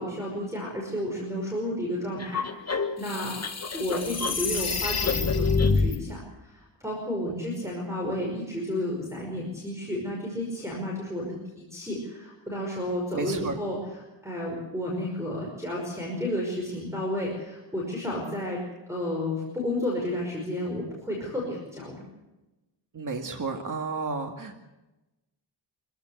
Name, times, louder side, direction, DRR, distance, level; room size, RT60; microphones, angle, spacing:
voice 1, 0.0-3.4 3.7-18.6 18.9-22.0, left 1 dB, 5° right, -2 dB, 5.4 m, -32 dB
sound 1, 2.2-6.0, left 4 dB, 35° left, 1.7 m, -26 dB
voice 2, 7.2-7.7 13.1-13.5 22.9-24.6, right 4 dB, 40° right, 4 dB, 2.2 m, -32 dB
25.0 x 15.5 x 8.1 m, 1.0 s
wide cardioid pair, 140°, 46 cm